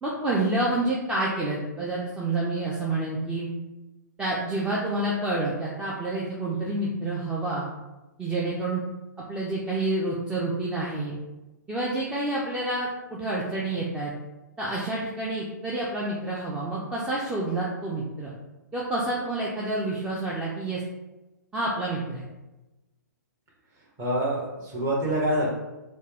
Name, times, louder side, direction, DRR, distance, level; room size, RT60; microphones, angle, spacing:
voice 1, 0.0-3.5 4.2-7.7 8.2-8.8 9.3-11.2 11.7-14.1 14.6-18.3 18.7-20.8 21.5-22.2, right 2 dB, 10° right, -5 dB, 0.6 m, -28 dB
voice 2, 24.0-25.5, right 1 dB, 25° right, -3 dB, 1.4 m, -26 dB
6.3 x 2.3 x 3.5 m, 1.1 s
figure-of-eight pair, 120°, 10 cm